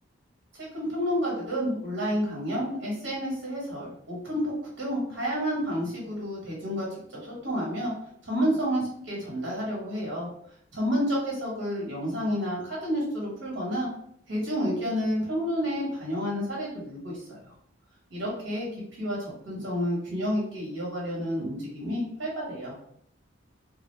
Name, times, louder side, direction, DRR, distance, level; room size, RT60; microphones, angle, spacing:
voice 1, 0.6-7.9 8.2-10.3 10.7-13.9 14.3-17.5 18.1-18.7 19.0-22.7, equal, 70° right, -4 dB, 1.0 m, -30 dB
2.3 x 2.1 x 3.2 m, 0.68 s
head